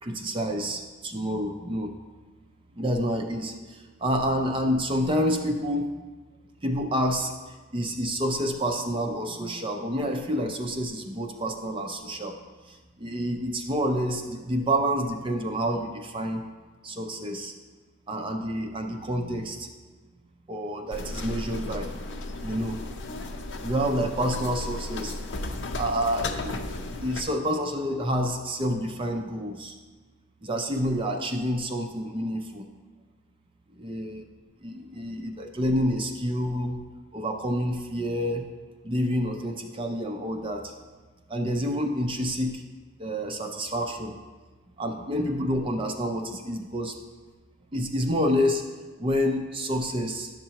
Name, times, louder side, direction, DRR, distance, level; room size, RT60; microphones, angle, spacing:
voice 1, 0.0-1.9 2.8-6.0 6.6-7.3 7.7-12.4 12.7-16.4 16.8-17.5 18.1-19.7 20.5-21.9 22.4-22.8 23.6-25.1 25.7-26.6 27.0-29.8 30.4-32.7 33.8-34.2 34.6-36.8 37.1-38.5 38.8-40.7 41.3-42.6 43.0-44.1 44.8-47.0 47.7-48.6 49.0-50.3, equal, 25° right, 3 dB, 0.5 m, -28 dB
sound 1, 20.9-27.2, left 2 dB, 60° left, 0.6 m, -35 dB
11.0 x 6.6 x 2.9 m, 1.3 s
head